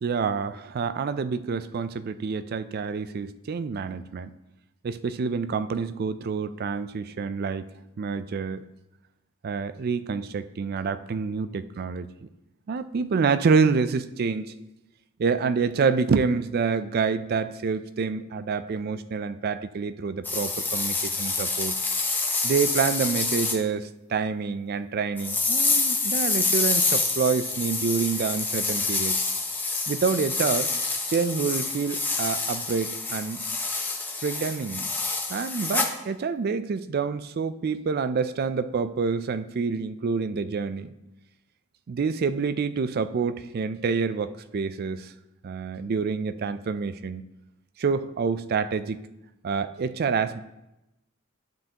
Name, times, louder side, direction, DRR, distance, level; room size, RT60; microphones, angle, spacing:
voice 1, 0.0-4.3 4.8-7.7 8.0-8.7 9.4-12.3 12.7-14.5 15.2-21.7 22.4-29.2 29.5-30.7 31.1-33.4 34.2-34.9 35.3-40.9 41.9-45.1 45.4-47.2 47.8-49.0 49.4-50.4, right 5 dB, 45° right, 13 dB, 0.3 m, -27 dB
sound 1, 20.2-23.6 25.2-35.9, left 3 dB, 10° left, 0.7 m, -27 dB
12.0 x 5.4 x 2.9 m, 0.96 s
head